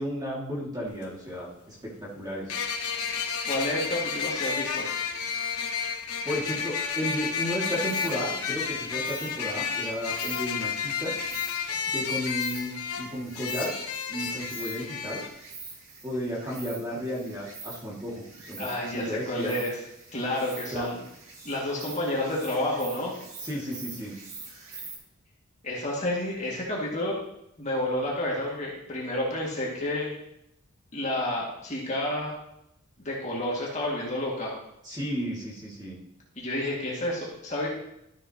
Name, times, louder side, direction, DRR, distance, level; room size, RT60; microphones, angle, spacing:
voice 1, 0.0-2.6 6.2-11.1 11.9-13.7 14.1-15.2 16.0-18.7 18.9-19.6 20.7-20.9 23.4-24.1 34.8-36.0, equal, 20° right, -5 dB, 2.0 m, -33 dB
sound 1, 0.9-1.0 2.5-15.3, left 6 dB, 90° left, 0.9 m, -31 dB
voice 2, 3.5-4.9 18.6-19.8 20.1-21.0 21.4-23.1 25.6-27.2 27.6-30.1 30.9-32.4 33.0-34.5 36.4-37.7, left 1 dB, 30° left, -4 dB, 2.0 m, -30 dB
Insect, 7.6-25.0, right 4 dB, 65° right, 2.2 m, -45 dB
12.5 x 6.8 x 2.9 m, 0.80 s
head